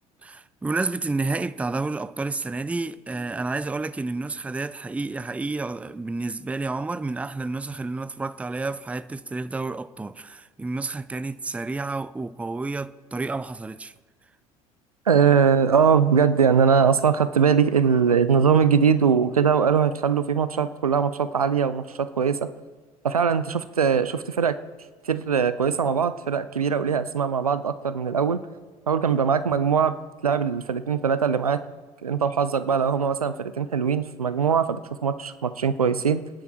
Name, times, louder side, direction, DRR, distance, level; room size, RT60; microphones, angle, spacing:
voice 1, 0.2-13.9, right 3 dB, 5° right, 0.5 m, -30 dB
voice 2, 15.1-22.4 23.0-24.5 25.1-28.4 28.9-29.9 30.2-31.6 32.0-36.2, right 6 dB, 80° right, 0.6 m, -21 dB
25.0 x 10.5 x 4.4 m
figure-of-eight pair, 65°, 18 cm